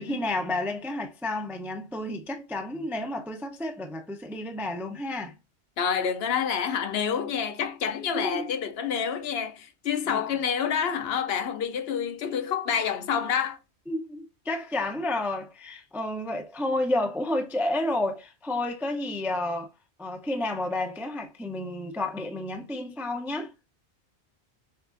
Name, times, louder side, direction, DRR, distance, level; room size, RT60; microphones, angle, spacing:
voice 1, 0.0-5.3 8.1-8.5 10.1-10.2 13.9-19.7 20.0-23.7, left 1 dB, 5° right, 0.3 m, -31 dB
voice 2, 5.8-13.6, left 7 dB, 65° left, 0.8 m, -28 dB
6.4 x 2.4 x 2.5 m
omnidirectional pair, 1.1 m